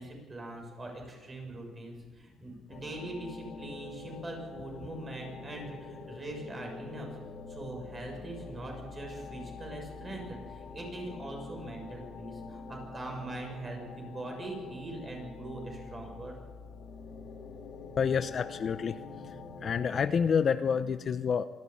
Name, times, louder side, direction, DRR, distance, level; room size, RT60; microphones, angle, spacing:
voice 1, 0.0-7.1 7.5-16.3, right 2 dB, 25° right, 2 dB, 6.8 m, -42 dB
sound 1, 2.7-20.1, left 4 dB, 60° left, 3.7 m, -46 dB
voice 2, 18.0-19.0 19.6-21.4, left 6 dB, 40° left, 11 dB, 0.8 m, -28 dB
25.5 x 15.0 x 8.7 m, 1.4 s
cardioid pair, 135°, 0 cm